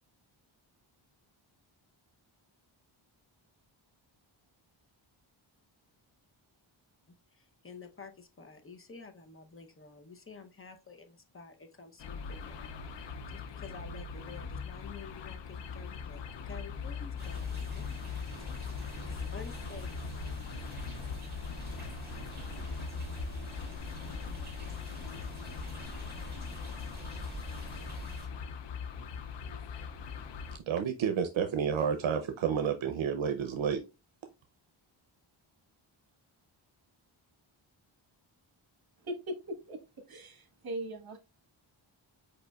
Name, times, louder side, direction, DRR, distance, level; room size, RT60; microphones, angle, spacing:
voice 1, 7.3-18.0 19.1-20.2, left 4 dB, 25° left, 0.7 m, -50 dB
sound 1, 12.0-30.6, left 6 dB, 65° left, 0.6 m, -41 dB
sound 2, 17.2-28.3, right 2 dB, 20° right, 1.8 m, -46 dB
voice 2, 30.7-33.8, right 7 dB, 70° right, 0.6 m, -30 dB
voice 3, 39.0-39.8 40.1-41.2, right 1 dB, 50° right, 1.2 m, -39 dB
5.1 x 4.3 x 2.3 m
wide cardioid pair, 155°, 48 cm